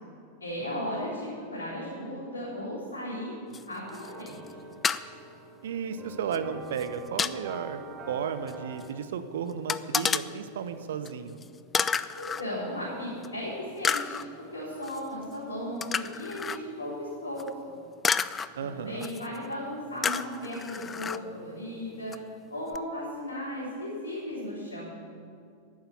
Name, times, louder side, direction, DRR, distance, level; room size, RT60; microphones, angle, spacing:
voice 1, 0.4-3.3 3.6-4.4 12.1-17.7 18.6-22.1 22.5-24.9, left 1 dB, 75° left, -7 dB, 3.8 m, -36 dB
sound 1, 3.5-3.6 3.9-4.5 4.8-5.0 6.3-6.4 6.8-7.4 8.5-8.6 8.8-8.9 9.7-10.2 11.0-11.1 11.4-11.5 11.7-12.4 13.2-13.3 13.8-14.3 14.8-15.0 15.8-16.6 17.4-17.5 18.0-18.5 19.0-19.4 20.0-21.2 22.1-22.2 22.7-22.8, left 6 dB, 20° left, 0.4 m, -30 dB
sound 2, 3.9-8.9, right 2 dB, 25° right, 2.4 m, -46 dB
voice 2, 5.6-7.8 8.1-11.4 18.6-19.1, right 7 dB, 60° right, 10 dB, 0.8 m, -34 dB
11.5 x 9.5 x 8.4 m, 2.4 s
figure-of-eight pair, 90°, 0 cm